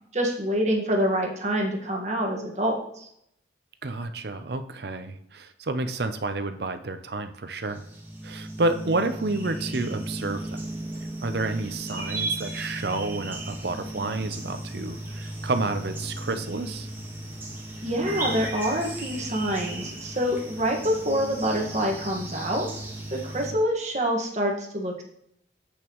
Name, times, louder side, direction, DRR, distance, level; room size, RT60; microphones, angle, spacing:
voice 1, 0.1-3.1 17.8-22.7 23.1-25.0, equal, 40° right, 0 dB, 1.7 m, -26 dB
voice 2, 3.8-7.9 8.2-10.6 11.2-16.9, right 2 dB, 60° right, 9 dB, 0.7 m, -30 dB
sound 1, 7.5-23.5, right 1 dB, 10° right, 1.6 m, -35 dB
9.0 x 8.2 x 3.1 m, 0.72 s
head